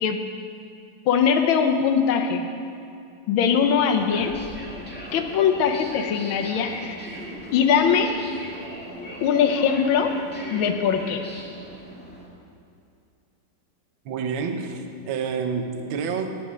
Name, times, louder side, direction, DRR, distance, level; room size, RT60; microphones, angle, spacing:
voice 1, 1.1-2.5 3.3-4.3 5.1-7.0 7.5-8.1 9.2-10.1 10.5-11.2, left 7 dB, 75° left, 5 dB, 1.6 m, -21 dB
sound 1, 3.6-12.3, equal, 5° left, 1.6 m, -39 dB
voice 2, 14.0-16.4, right 5 dB, 70° right, 6 dB, 1.5 m, -28 dB
10.0 x 8.1 x 6.3 m, 2.4 s
omnidirectional pair, 2.3 m